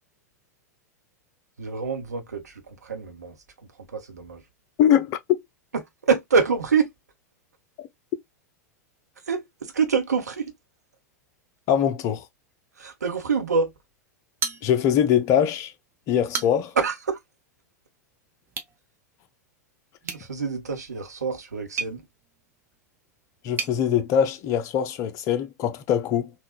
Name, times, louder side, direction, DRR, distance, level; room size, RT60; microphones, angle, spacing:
voice 1, 1.6-3.3 3.9-4.4 6.1-6.9 9.3-10.5 12.8-13.7 16.8-17.2 20.0-22.0, right 5 dB, 75° right, 0.8 m, -26 dB
voice 2, 4.8-5.2 11.7-12.2 14.6-15.7 16.1-16.7 23.4-26.3, left 9 dB, 35° left, 0.5 m, -22 dB
sound 1, 14.4-15.2 15.5-15.6 16.1-16.8 18.5-18.8 20.0-23.8, right 6 dB, 25° right, 0.6 m, -35 dB
3.8 x 2.2 x 2.4 m
figure-of-eight pair, 95°, 9 cm